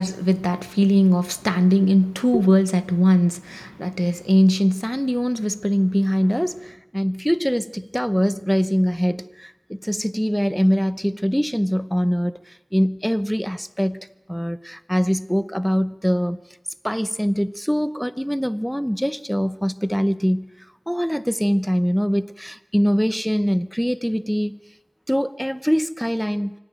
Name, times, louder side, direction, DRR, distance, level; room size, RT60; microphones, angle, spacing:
voice 1, 0.0-14.0 14.3-16.4 16.8-24.6 25.1-26.5, equal, ahead, 0.7 m, -22 dB
24.5 x 16.5 x 9.1 m
wide cardioid pair, 60°, 0 cm